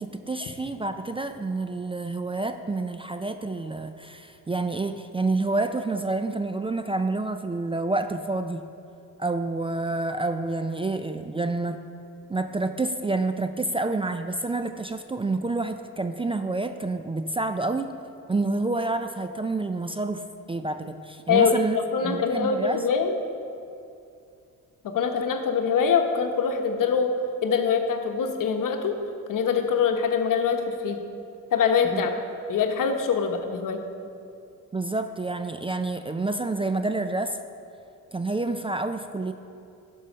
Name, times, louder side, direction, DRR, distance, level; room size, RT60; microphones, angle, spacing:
voice 1, 0.0-8.6 9.2-11.8 12.3-17.9 18.3-21.8 22.0-22.9 31.8-32.1 34.7-37.4 38.1-39.3, right 2 dB, 15° right, 8 dB, 0.4 m, -28 dB
voice 2, 21.3-23.1 24.8-27.1 27.4-29.0 29.3-31.0 31.5-32.1 32.5-33.8, left 6 dB, 65° left, 5 dB, 1.1 m, -24 dB
12.0 x 5.5 x 5.1 m, 2.5 s
supercardioid pair, 65°, 35 cm